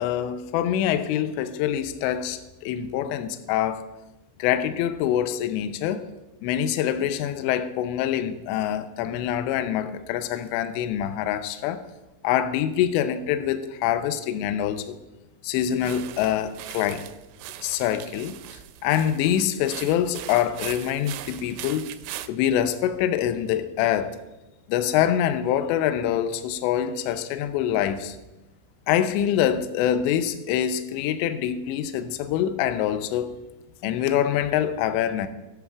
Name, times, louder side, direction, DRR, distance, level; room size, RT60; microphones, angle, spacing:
voice 1, 0.0-3.9 4.4-6.1 6.4-11.8 12.2-15.0 15.4-17.1 17.6-18.4 18.8-21.9 22.3-24.2 24.7-28.2 28.9-33.3 33.8-35.3, left 10 dB, 85° left, 2.6 m, -25 dB
sound 1, 15.6-22.3, right 13 dB, 85° right, 3.0 m, -40 dB
21.0 x 7.7 x 2.4 m
omnidirectional pair, 5.8 m